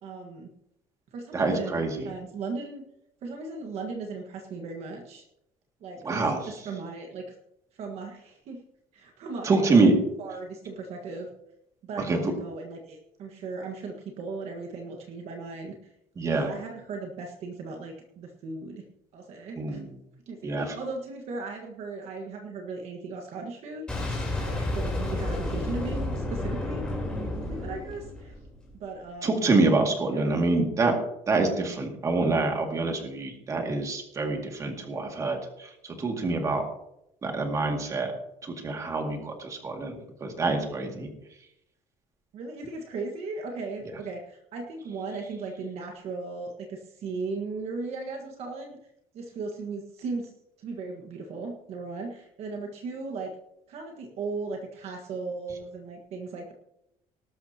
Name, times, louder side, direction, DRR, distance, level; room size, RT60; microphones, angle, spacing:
voice 1, 0.0-0.5 1.1-2.8 3.2-5.2 5.8-7.4 7.8-8.6 8.9-9.9 10.2-11.3 11.8-15.7 16.3-18.8 19.1-19.8 20.3-23.8 24.4-26.9 27.1-28.3 28.7-29.5 30.1-30.3 42.3-48.8 49.1-50.3 50.6-53.4 53.7-56.5, right 3 dB, 50° right, 2 dB, 1.6 m, -37 dB
voice 2, 1.3-2.1 6.0-6.5 9.4-9.9 12.0-12.3 16.2-16.5 19.6-20.0 20.4-20.8 29.2-30.9 31.3-36.6 37.2-38.1 38.4-39.9 40.2-41.1, right 3 dB, 25° right, 2 dB, 2.2 m, -26 dB
Boom, 23.9-28.7, left 1 dB, 5° left, 3.7 m, -31 dB
19.0 x 12.0 x 2.9 m, 0.82 s
cardioid pair, 175°, 14 cm